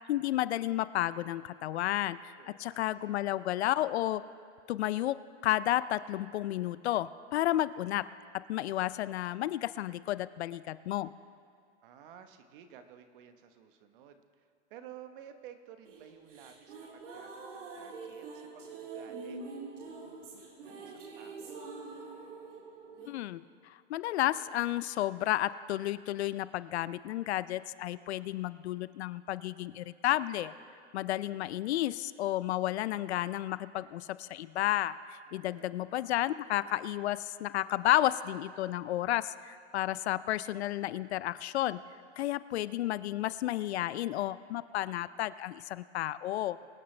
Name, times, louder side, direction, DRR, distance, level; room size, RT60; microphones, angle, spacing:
voice 1, 0.1-4.2 4.7-8.1 8.3-11.1 23.1-30.5 30.9-41.8 42.2-46.6, left 14 dB, 65° left, 16 dB, 0.5 m, -32 dB
voice 2, 2.3-3.2 11.8-21.6 35.3-36.2 46.6-46.7, right 9 dB, 45° right, 8 dB, 1.2 m, -54 dB
sound 1, 15.8-23.1, right 4 dB, 80° right, 2.8 m, -45 dB
23.5 x 9.4 x 3.3 m, 2.2 s
hypercardioid pair, 150°, 36 cm